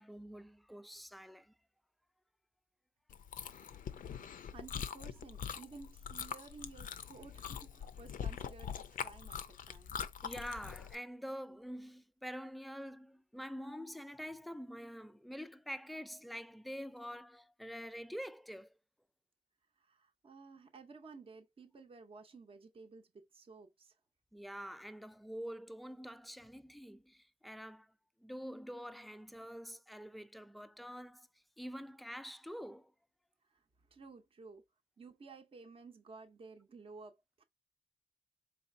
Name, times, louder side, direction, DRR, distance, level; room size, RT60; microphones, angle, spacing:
voice 1, 0.0-1.5 10.2-18.7 24.3-27.9 28.2-31.3 31.6-32.9, equal, ahead, 0.3 m, -46 dB
Chewing mastication, 3.1-10.9, left 8 dB, 65° left, 0.5 m, -43 dB
voice 2, 4.5-10.0 19.8-24.0 33.4-34.6 35.0-37.4, right 4 dB, 35° right, 0.7 m, -54 dB
4.2 x 3.2 x 2.6 m
cardioid pair, 95°, 15 cm